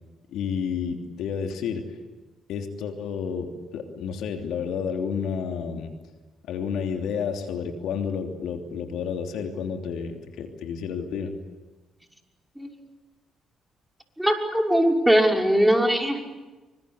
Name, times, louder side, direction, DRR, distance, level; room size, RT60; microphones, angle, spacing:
voice 1, 0.3-1.9 2.5-5.9 6.5-11.4, left 6 dB, 70° left, 4 dB, 3.1 m, -30 dB
voice 2, 14.2-16.4, equal, 5° right, 2 dB, 6.0 m, -21 dB
27.5 x 25.0 x 8.4 m, 1.2 s
hypercardioid pair, 50°, 0 cm